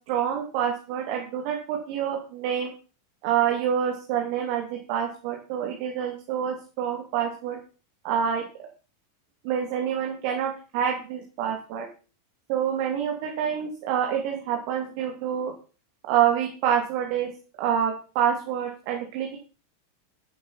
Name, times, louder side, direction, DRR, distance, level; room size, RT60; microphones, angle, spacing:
voice 1, 0.1-2.7 3.2-7.6 8.0-8.4 9.4-11.8 12.5-15.5 16.1-17.3 17.6-19.4, right 9 dB, 45° right, 2 dB, 2.7 m, -27 dB
12.0 x 11.0 x 4.3 m, 0.36 s
figure-of-eight pair, 90°, 0 cm